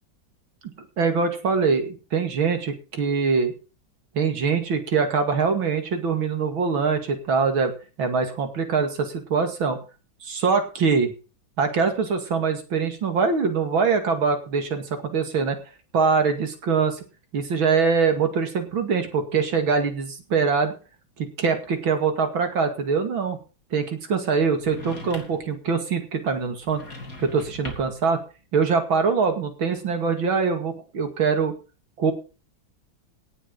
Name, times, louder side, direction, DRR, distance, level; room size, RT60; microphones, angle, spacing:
voice 1, 1.0-3.5 4.1-7.7 8.0-9.8 10.2-11.1 11.6-15.6 15.9-17.0 17.3-20.8 21.2-23.4 23.7-26.8 27.2-28.2 28.5-31.5 32.0-32.1, right 5 dB, 80° right, 6 dB, 3.1 m, -23 dB
sound 1, 24.6-25.5 26.6-28.1, left 2 dB, 45° left, 3.6 m, -39 dB
18.0 x 7.1 x 5.6 m, 0.34 s
omnidirectional pair, 2.2 m